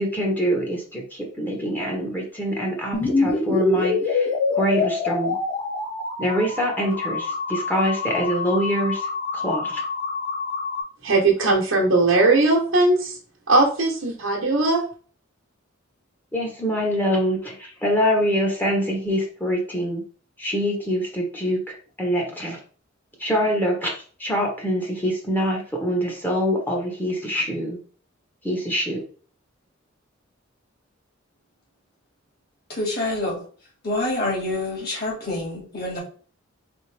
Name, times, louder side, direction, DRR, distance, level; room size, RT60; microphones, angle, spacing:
voice 1, 0.0-5.4 6.2-9.8 16.3-20.0 20.4-22.6 23.2-27.8 28.4-29.0, equal, 10° left, 0 dB, 1.0 m, -25 dB
sound 1, 2.9-10.8, left 3 dB, 30° left, 1.8 m, -26 dB
voice 2, 11.0-13.2 13.5-14.8, right 2 dB, 75° right, -2 dB, 1.1 m, -19 dB
voice 3, 32.7-33.4 33.8-36.0, left 2 dB, 50° left, -3 dB, 2.5 m, -26 dB
4.3 x 3.7 x 3.3 m, 0.41 s
head